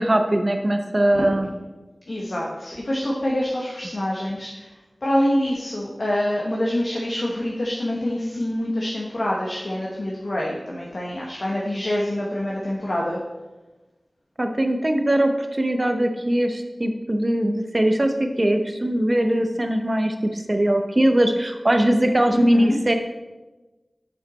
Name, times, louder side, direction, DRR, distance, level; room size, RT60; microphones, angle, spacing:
voice 1, 0.0-1.5 14.4-22.9, right 1 dB, 35° right, 6 dB, 0.8 m, -21 dB
voice 2, 2.1-4.7 5.0-13.2 22.3-22.8, left 1 dB, 60° left, -3 dB, 1.0 m, -26 dB
6.5 x 5.8 x 4.1 m, 1.1 s
wide cardioid pair, 65°, 0 cm